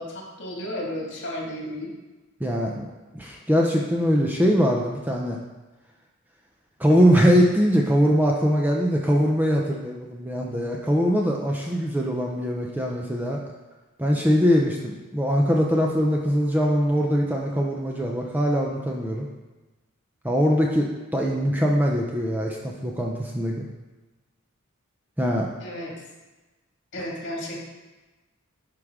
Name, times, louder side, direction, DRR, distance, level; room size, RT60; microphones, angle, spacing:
voice 1, 0.0-1.9 25.6-25.9 26.9-27.6, left 1 dB, 55° left, -3 dB, 2.0 m, -33 dB
voice 2, 2.4-2.9 3.1-5.4 6.8-13.4 14.0-19.3 20.2-23.6 25.2-25.5, equal, 10° right, -1 dB, 0.6 m, -22 dB
11.0 x 4.9 x 3.6 m, 1.2 s
head